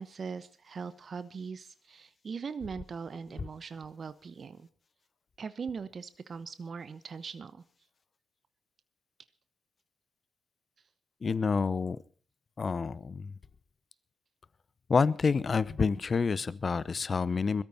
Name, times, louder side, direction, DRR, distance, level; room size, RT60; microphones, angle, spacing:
voice 1, 0.0-4.7 5.4-7.6, right 5 dB, 50° right, 13 dB, 1.0 m, -40 dB
voice 2, 11.2-12.0 12.6-13.3 14.9-17.6, left 5 dB, 45° left, 19 dB, 0.8 m, -28 dB
21.5 x 13.5 x 4.2 m, 0.40 s
hypercardioid pair, 45°, 0 cm